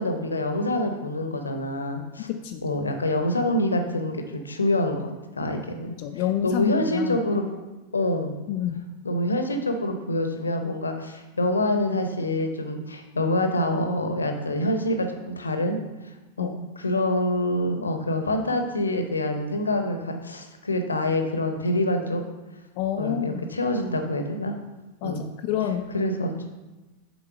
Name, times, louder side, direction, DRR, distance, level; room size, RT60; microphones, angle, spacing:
voice 1, 0.0-2.3 2.6-5.1 5.4-5.9 6.4-7.6 7.9-8.4 9.0-15.8 16.4-22.2 23.0-24.5 25.0-25.3 25.9-26.5, left 1 dB, 75° left, 6 dB, 0.8 m, -26 dB
voice 2, 2.3-2.6 6.0-7.2 8.5-8.7 16.4-16.6 22.8-23.4 25.0-25.9, left 10 dB, 45° left, 6 dB, 0.4 m, -28 dB
7.1 x 4.3 x 5.7 m, 1.1 s
figure-of-eight pair, 90°, 0 cm